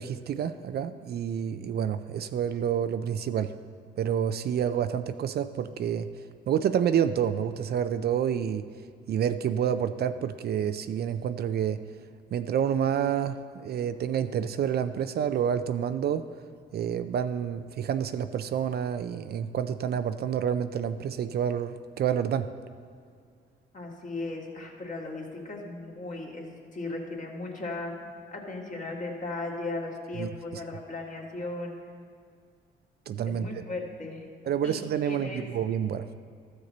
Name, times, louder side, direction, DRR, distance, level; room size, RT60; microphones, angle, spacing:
voice 1, 0.0-3.5 4.0-6.1 6.5-8.6 9.1-11.8 12.3-16.3 16.7-22.5 30.2-30.3 33.1-33.5 34.5-36.1, right 8 dB, 55° right, 11 dB, 0.4 m, -28 dB
voice 2, 23.7-27.9 28.3-31.8 33.3-34.3 34.6-35.5, left 2 dB, 40° left, -1 dB, 1.9 m, -37 dB
13.5 x 6.6 x 4.2 m, 2.2 s
cardioid pair, 90°, 20 cm